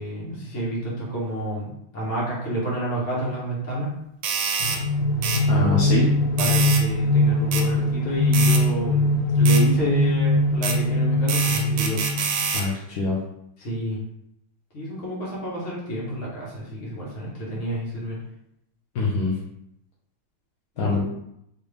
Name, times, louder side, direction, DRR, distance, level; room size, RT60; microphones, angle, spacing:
voice 1, 0.0-3.9 5.5-5.9 6.4-12.0 13.6-14.0 14.7-18.2 20.7-21.0, right 1 dB, 40° left, -5 dB, 1.5 m, -29 dB
sound 1, 4.2-4.8 5.2-5.4 6.4-6.8 7.5-7.7 8.3-8.6 9.5-9.6 10.6-10.8 11.3-12.7, right 5 dB, 85° right, 1.5 m, -26 dB
sound 2, 4.6-12.5, left 1 dB, 80° left, 1.4 m, -21 dB
voice 2, 5.5-6.1 12.5-13.2 18.9-19.4 20.8-21.0, left 3 dB, 65° left, -5 dB, 1.0 m, -24 dB
4.3 x 3.2 x 3.4 m, 0.79 s
omnidirectional pair, 2.3 m